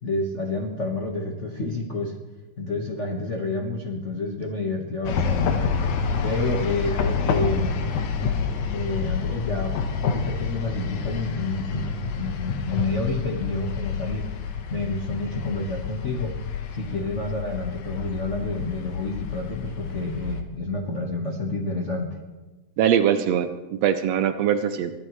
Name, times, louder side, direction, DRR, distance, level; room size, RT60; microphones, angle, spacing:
voice 1, 0.0-2.2 2.6-5.5 5.9-7.7 8.7-14.3 14.7-16.4 16.7-22.2, left 2 dB, 55° left, 1 dB, 0.8 m, -29 dB
sound 1, 5.0-20.4, left 5 dB, 70° left, 2.4 m, -28 dB
voice 2, 22.8-24.9, right 9 dB, 75° right, 8 dB, 1.5 m, -22 dB
23.0 x 14.5 x 3.2 m, 1.2 s
omnidirectional pair, 3.5 m